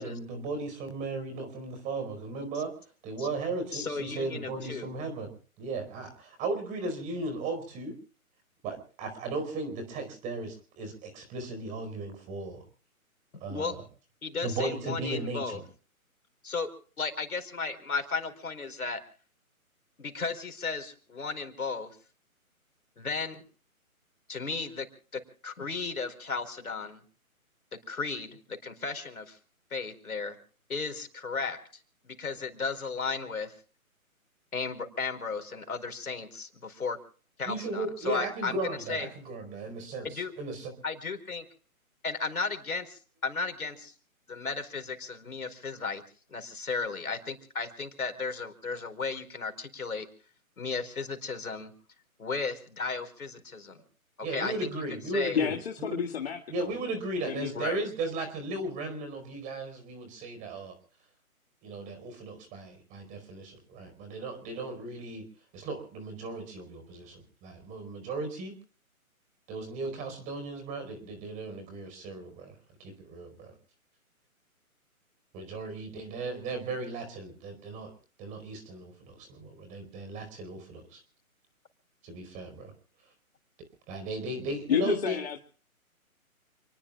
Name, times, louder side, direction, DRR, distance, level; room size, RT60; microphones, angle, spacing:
voice 1, 0.0-2.7 3.0-7.9 8.6-12.6 13.4-13.8 14.4-15.6 37.4-40.7 54.2-56.0 56.5-60.7 61.6-65.2 65.5-68.6 69.5-72.5 72.8-73.5 75.3-77.9 78.2-81.0 82.0-82.7 83.9-85.2, right 2 dB, 15° right, 8 dB, 4.7 m, -36 dB
voice 2, 3.7-4.9 13.3-13.7 14.2-15.6 16.4-16.7 17.0-19.0 20.0-21.9 23.0-23.4 24.3-24.9 25.1-27.0 27.9-29.4 29.7-30.4 30.7-31.6 32.0-33.5 34.5-37.0 37.4-39.1 40.0-40.3 40.8-41.4 42.0-43.9 44.3-46.0 46.3-50.1 50.6-51.7 52.2-53.8 54.3-54.7 55.1-55.4 57.5-57.8, left 4 dB, 80° left, 8 dB, 4.6 m, -34 dB
voice 3, 55.3-56.7 57.3-57.5 84.7-85.4, left 8 dB, 45° left, 2 dB, 2.0 m, -30 dB
29.5 x 20.5 x 2.4 m, 0.43 s
hypercardioid pair, 150°, 43 cm